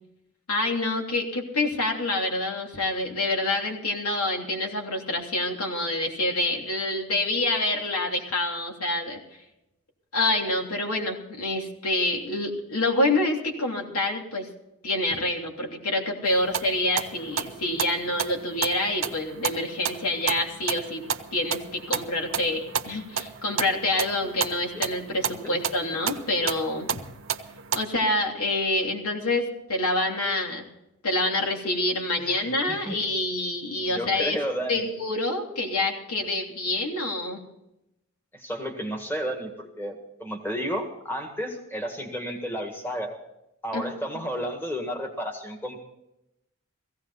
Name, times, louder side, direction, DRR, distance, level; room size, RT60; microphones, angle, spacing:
voice 1, 0.5-9.2 10.1-14.5 14.8-21.0 21.3-26.9 27.7-30.7 31.0-34.4 34.7-37.4 43.7-43.8, left 2 dB, 80° left, 1 dB, 3.1 m, -27 dB
sound 1, 16.3-27.8, right 7 dB, 60° right, 0.9 m, -33 dB
voice 2, 32.2-33.0 33.8-34.9 38.3-43.2 43.6-45.8, equal, 10° left, 3 dB, 1.8 m, -32 dB
17.0 x 16.5 x 4.1 m, 0.87 s
head